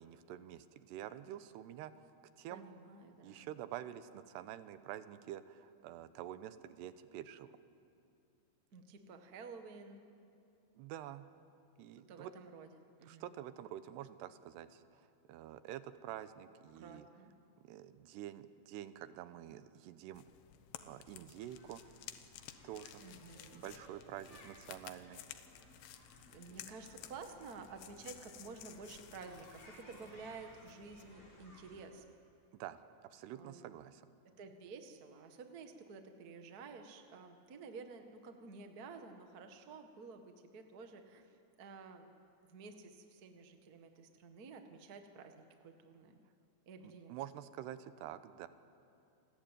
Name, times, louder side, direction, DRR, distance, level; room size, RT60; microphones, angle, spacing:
voice 1, 0.0-1.9 2.4-2.6 3.2-7.6 10.8-11.3 11.8-12.3 13.0-15.0 15.3-17.1 17.6-20.3 20.8-21.8 22.6-23.0 23.5-25.2 32.5-32.8 33.1-34.0 46.8-48.5, right 12 dB, 90° right, 12 dB, 3.0 m, -48 dB
voice 2, 2.5-3.5 8.7-10.0 12.1-13.3 16.7-17.3 23.0-23.7 26.3-32.0 33.3-33.7 34.2-42.1 42.5-46.2 46.6-47.2, right 4 dB, 70° right, 6 dB, 0.9 m, -52 dB
sound 1, 20.1-31.1, left 11 dB, 90° left, 3.2 m, -55 dB
sound 2, 21.4-31.8, left 1 dB, 35° left, 6.8 m, -61 dB
29.0 x 20.0 x 9.1 m, 2.6 s
omnidirectional pair, 4.7 m